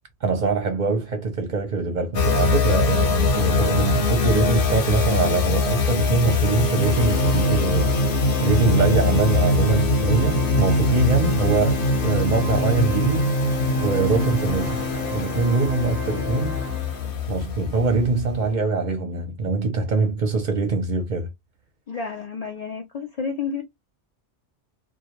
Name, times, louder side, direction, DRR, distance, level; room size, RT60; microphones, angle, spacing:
voice 1, 0.2-7.9 8.4-13.3 13.8-14.8 15.1-16.6 17.3-21.3, right 3 dB, 50° right, 0.6 m, -23 dB
sound 1, 2.1-18.4, left 2 dB, 55° left, 0.8 m, -22 dB
Organ, 6.7-17.4, left 3 dB, 10° left, 0.7 m, -31 dB
voice 2, 21.9-23.6, left 5 dB, 80° left, 0.3 m, -31 dB
2.2 x 2.1 x 2.8 m
omnidirectional pair, 1.2 m